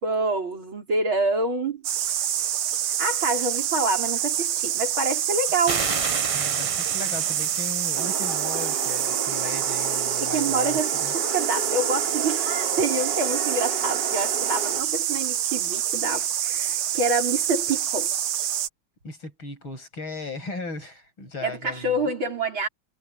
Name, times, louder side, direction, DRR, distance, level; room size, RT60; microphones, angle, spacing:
voice 1, 0.0-1.8 3.0-5.9 10.2-18.1 21.4-22.7, right 2 dB, 70° right, 5.8 m, -27 dB
sound 1, 1.8-18.7, right 10 dB, 85° right, 1.9 m, -26 dB
sound 2, 5.6-9.0, right 3 dB, 30° right, 0.6 m, -32 dB
voice 2, 6.3-11.1 19.0-22.1, left 3 dB, 70° left, 8.5 m, -37 dB
sound 3, 7.9-14.8, right 2 dB, 55° right, 6.4 m, -33 dB
omnidirectional pair, 2.3 m